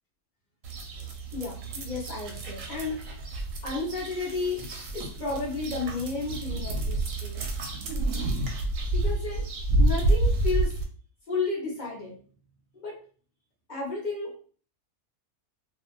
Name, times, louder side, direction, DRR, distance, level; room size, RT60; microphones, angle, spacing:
sound 1, 0.6-10.8, right 2 dB, 70° right, 0.8 m, -29 dB
voice 1, 1.0-3.0 3.6-4.6 4.9-7.4 8.9-9.4 9.8-10.7 11.3-12.2 12.7-13.0 13.7-14.3, left 3 dB, 55° left, -3 dB, 0.5 m, -32 dB
2.4 x 2.3 x 2.8 m, 0.44 s
omnidirectional pair, 1.7 m